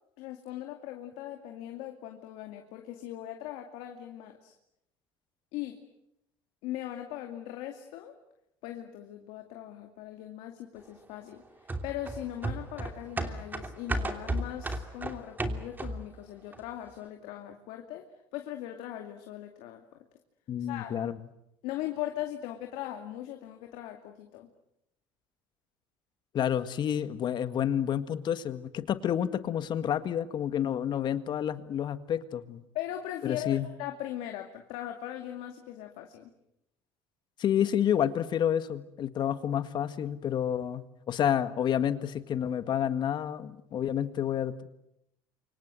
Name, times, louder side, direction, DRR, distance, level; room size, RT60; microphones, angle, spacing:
voice 1, 0.2-4.5 5.5-5.8 6.6-8.2 8.6-11.4 11.8-18.1 18.3-19.8 20.7-21.0 21.6-24.5 32.7-36.3, left 12 dB, 75° left, 4 dB, 2.5 m, -39 dB
sound 1, 11.7-16.2 16.5-16.6, right 2 dB, 20° right, 3.0 m, -34 dB
voice 2, 20.5-21.1 26.3-32.7 33.2-33.7 37.4-44.7, left 9 dB, 50° left, 11 dB, 1.8 m, -29 dB
28.5 x 25.0 x 7.8 m, 0.81 s
supercardioid pair, 95°, 10 cm